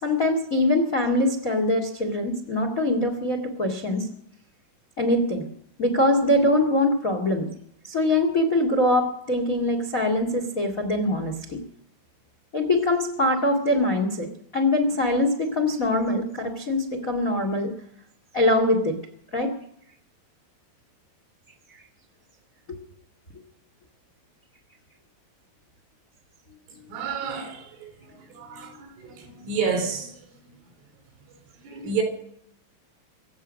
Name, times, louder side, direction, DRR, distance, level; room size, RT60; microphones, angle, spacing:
voice 1, 0.0-4.1 5.0-5.5 5.8-7.5 7.8-11.6 12.5-17.7 18.3-19.0 19.3-19.5, left 1 dB, 55° left, 0.9 m, -23 dB
voice 2, 26.7-30.6 31.3-31.4 31.6-32.0, right 5 dB, 85° right, 6.1 m, -31 dB
24.0 x 8.6 x 6.4 m
omnidirectional pair, 5.5 m